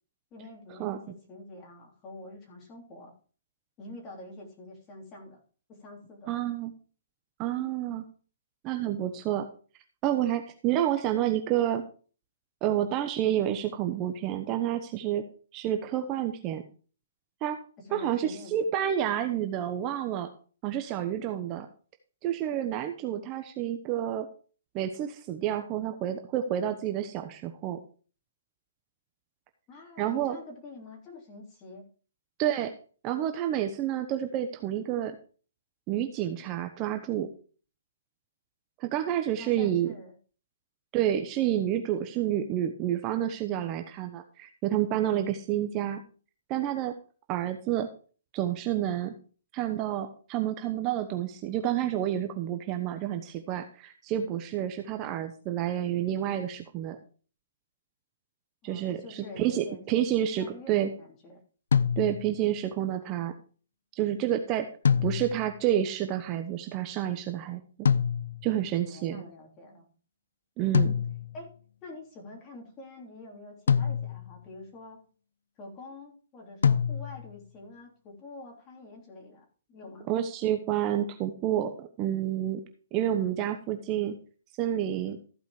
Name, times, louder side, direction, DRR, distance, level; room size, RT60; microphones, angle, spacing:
voice 1, 0.3-3.1 3.8-5.4 5.7-6.3 17.8-18.7 29.7-31.9 39.4-40.2 58.6-60.1 60.4-61.4 68.8-69.9 71.3-71.5 71.8-75.0 75.6-80.1, left 2 dB, 25° left, -1 dB, 3.3 m, -46 dB
voice 2, 6.3-6.7 7.4-8.0 8.6-9.5 10.0-11.8 12.6-15.2 15.5-16.6 17.4-17.6 17.9-20.3 20.6-21.7 22.2-24.3 24.7-27.8 30.0-30.4 32.4-32.7 33.0-35.2 35.9-37.3 38.8-39.9 40.9-46.0 46.5-46.9 47.3-47.9 48.3-49.1 49.5-57.0 58.6-60.9 62.0-63.3 64.0-64.7 65.0-67.6 68.4-69.2 70.6-70.9 80.1-82.6 82.9-84.1 84.6-85.2, right 11 dB, 25° right, 6 dB, 0.9 m, -29 dB
sound 1, 61.7-62.5 64.8-65.6 67.9-68.6 70.7-71.5 73.7-74.4 76.6-77.4, left 7 dB, 80° left, 0.5 m, -26 dB
14.5 x 5.1 x 5.0 m, 0.40 s
hypercardioid pair, 150°, 0 cm